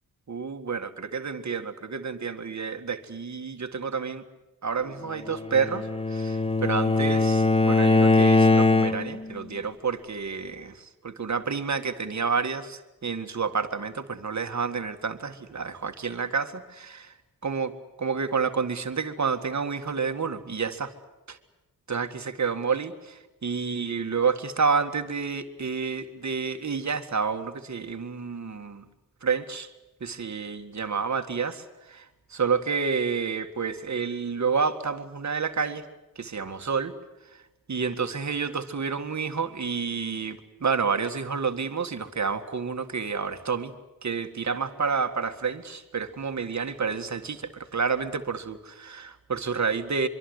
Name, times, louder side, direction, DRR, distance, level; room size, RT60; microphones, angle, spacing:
voice 1, 0.3-4.2 4.6-17.1 17.4-20.9 21.3-21.4 21.9-28.8 29.2-29.7 30.0-32.1 32.3-35.8 36.2-37.0 37.7-43.7 44.0-50.1, right 5 dB, 55° right, 7 dB, 1.9 m, -29 dB
Bowed string instrument, 5.3-9.3, left 3 dB, 15° left, 1.2 m, -21 dB
25.0 x 24.0 x 8.0 m, 1.0 s
wide cardioid pair, 105°, 34 cm